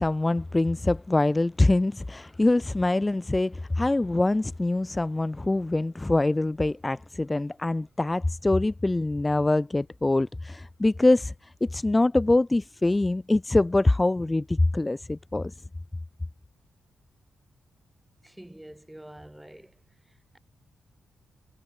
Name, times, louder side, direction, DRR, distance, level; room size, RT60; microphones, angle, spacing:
voice 1, 0.0-15.5, left 2 dB, 15° left, 0.5 m, -24 dB
voice 2, 18.2-20.4, right 1 dB, 5° right, 1.8 m, -48 dB
cardioid pair, 105°, 0 cm